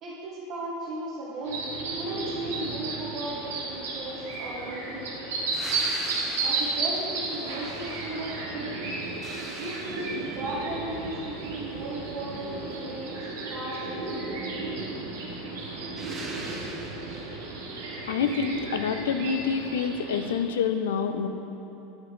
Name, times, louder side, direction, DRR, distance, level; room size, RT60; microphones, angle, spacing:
voice 1, 0.0-5.5 6.4-8.7 9.4-13.2 13.5-14.5, right 1 dB, 50° right, -7 dB, 1.3 m, -36 dB
sound 1, 1.4-20.3, right 3 dB, 85° right, 1.1 m, -33 dB
sound 2, 5.5-8.4 8.8-10.6 16.0-17.4 20.0-20.1, right 2 dB, 30° right, 1.0 m, -41 dB
voice 2, 18.1-21.3, left 6 dB, 85° left, 8 dB, 0.4 m, -27 dB
9.3 x 3.2 x 4.9 m, 3.0 s
hypercardioid pair, 105°, 0 cm